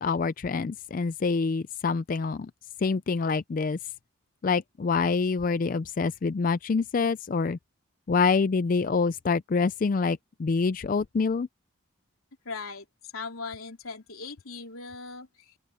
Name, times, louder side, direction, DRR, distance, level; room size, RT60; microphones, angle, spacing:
voice 1, 0.0-2.5 2.8-3.8 4.4-7.6 8.1-11.5, left 4 dB, 40° left, 0.3 m, -26 dB
voice 2, 12.4-12.8 13.1-15.5, left 4 dB, 85° left, 3.4 m, -39 dB
open air
head